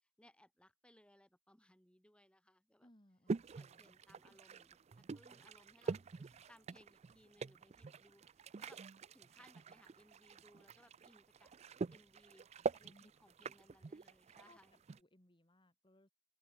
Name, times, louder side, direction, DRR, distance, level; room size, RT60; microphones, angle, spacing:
voice 1, 0.2-2.9 3.6-8.8 9.1-11.5 11.9-14.8, left 1 dB, 5° left, 3.9 m, -67 dB
voice 2, 2.8-3.9 12.7-13.1 14.4-14.6 15.0-16.1, left 1 dB, 25° left, 2.7 m, -67 dB
sound 1, 3.3-15.0, right 4 dB, 35° right, 0.4 m, -46 dB
open air
head